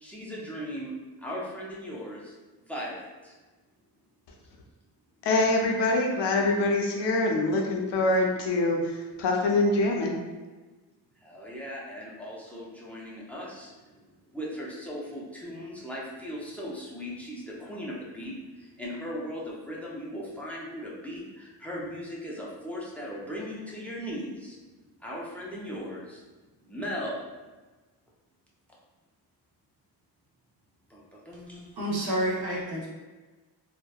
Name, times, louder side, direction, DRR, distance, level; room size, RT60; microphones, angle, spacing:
voice 1, 0.0-3.3 11.1-14.0 14.3-24.6 25.0-26.2 26.6-27.3 30.9-31.8, equal, 5° left, -5 dB, 0.3 m, -38 dB
voice 2, 5.2-8.9 9.2-10.2, left 2 dB, 85° left, 0 dB, 0.6 m, -24 dB
voice 3, 31.8-32.9, right 1 dB, 65° right, -4 dB, 0.7 m, -29 dB
2.7 x 2.1 x 2.2 m, 1.2 s
wide cardioid pair, 160°, 41 cm